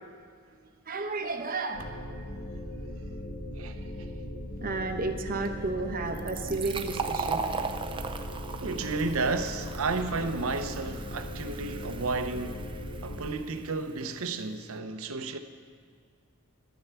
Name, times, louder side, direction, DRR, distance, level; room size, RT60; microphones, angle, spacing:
voice 1, 0.9-1.9 4.6-7.4, right 3 dB, 45° right, 0.9 m, -32 dB
sound 1, 1.7-13.2, left 1 dB, 55° left, 1.9 m, -39 dB
voice 2, 3.5-4.1 8.6-12.7 13.0-15.4, right 3 dB, 75° right, 0.7 m, -32 dB
Fill (with liquid), 6.1-13.5, right 5 dB, 25° right, 0.5 m, -38 dB
11.5 x 6.7 x 8.2 m
head